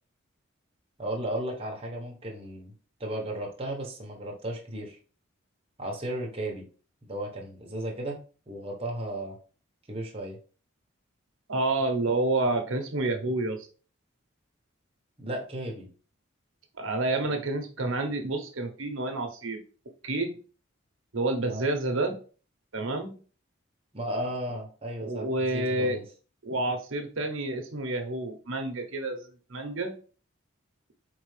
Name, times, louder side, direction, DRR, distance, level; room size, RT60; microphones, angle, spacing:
voice 1, 1.0-2.7 3.0-5.0 5.8-6.6 7.0-8.2 8.5-9.4 9.9-10.4 15.2-15.9 21.5-21.7 23.9-26.0, right 1 dB, 30° right, -1 dB, 1.1 m, -34 dB
voice 2, 11.5-13.7 16.8-19.6 20.0-20.3 21.1-22.2 22.7-23.2 25.0-26.0 26.4-29.2 29.5-29.9, right 2 dB, 75° right, 5 dB, 0.9 m, -29 dB
4.6 x 3.4 x 3.2 m, 0.38 s
head